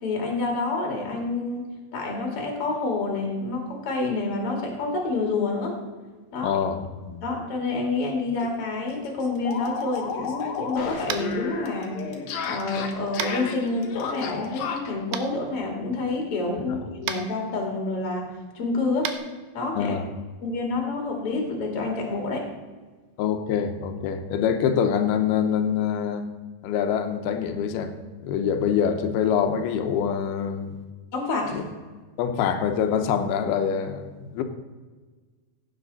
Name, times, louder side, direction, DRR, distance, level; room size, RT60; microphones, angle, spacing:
voice 1, 0.0-5.8 6.3-6.5 7.2-12.1 12.4-19.1 19.5-19.9 20.4-22.5 31.1-31.6, left 3 dB, 40° left, 1 dB, 2.8 m, -28 dB
voice 2, 6.4-7.2 16.7-16.8 19.8-20.0 23.2-26.3 26.6-27.9 28.2-30.8 31.5-31.6 32.2-34.4, left 8 dB, 90° left, 7 dB, 2.9 m, -25 dB
sound 1, 8.0-8.1 8.4-8.5 8.8-15.0, left 6 dB, 65° left, 2.1 m, -33 dB
Tap, 11.1-11.3 13.2-13.3 15.1-15.2 17.0-17.2 19.0-19.2, right 9 dB, 75° right, 2.3 m, -29 dB
16.0 x 8.7 x 4.1 m, 1.4 s
omnidirectional pair, 4.3 m